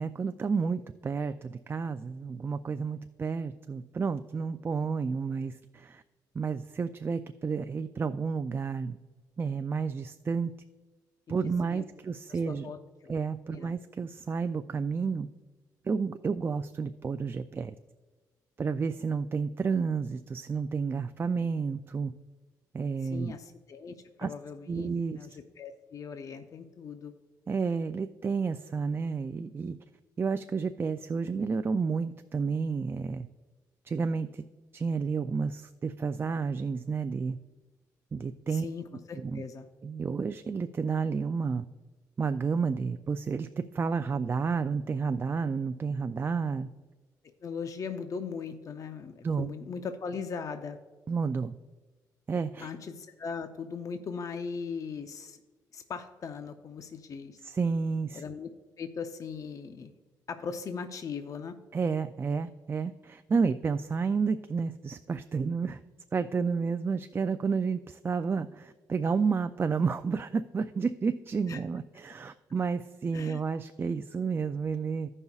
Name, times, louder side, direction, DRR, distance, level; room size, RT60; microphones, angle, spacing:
voice 1, 0.0-6.0 6.3-9.0 9.4-10.5 11.3-12.7 13.1-15.3 15.8-17.7 18.6-22.1 22.7-23.3 24.2-24.3 24.7-25.2 27.5-29.8 30.2-33.3 33.9-34.4 34.7-37.4 38.1-38.7 39.1-39.4 39.8-41.6 42.2-46.7 49.2-49.5 51.1-51.5 52.3-52.7 57.4-58.2 61.7-65.8 66.1-75.1, right 5 dB, 30° right, 9 dB, 0.3 m, -31 dB
voice 2, 11.4-11.8 12.3-13.1 13.5-13.7 23.0-27.1 38.5-39.7 47.4-50.8 52.6-55.4 55.7-57.4 58.1-58.5 58.8-59.9 60.3-61.5 71.5-71.6 73.1-73.4, left 5 dB, 50° left, 7 dB, 0.6 m, -39 dB
15.5 x 5.4 x 2.4 m, 1.3 s
cardioid pair, 80°, 7 cm